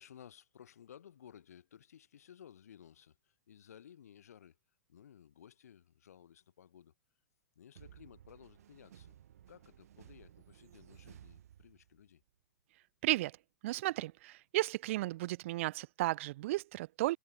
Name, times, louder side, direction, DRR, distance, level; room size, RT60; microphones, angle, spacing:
voice 1, 0.0-4.6 4.9-6.9 7.5-9.1 9.5-12.2, left 9 dB, 80° left, 6.6 m, -57 dB
sound 1, 7.8-12.2, right 11 dB, 75° right, 2.7 m, -58 dB
voice 2, 13.6-17.2, right 17 dB, 55° right, 0.4 m, -34 dB
hypercardioid pair, 135°, 8 cm